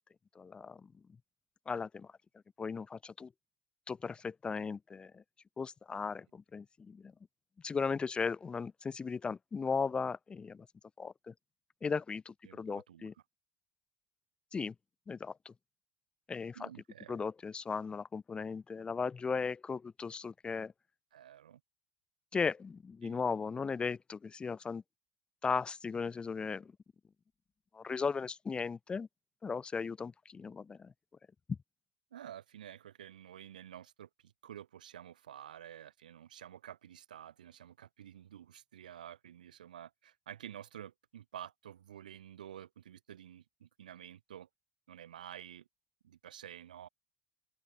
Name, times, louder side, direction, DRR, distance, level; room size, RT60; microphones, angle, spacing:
voice 1, 0.4-0.9 1.7-2.1 2.6-3.3 3.9-5.2 5.6-7.1 7.6-10.7 11.0-11.3 11.8-13.1 14.5-14.7 15.1-15.5 16.3-16.7 17.1-20.7 22.3-24.8 25.4-26.7 27.7-29.1 29.4-30.9 31.5-31.6, left 5 dB, 20° left, 0.4 m, -37 dB
voice 2, 12.4-13.1 16.5-17.2 21.1-21.6 23.0-23.2 32.1-44.5 44.9-45.7 46.0-46.9, right 10 dB, 80° right, 1.0 m, -50 dB
open air
hypercardioid pair, 75°, 4 cm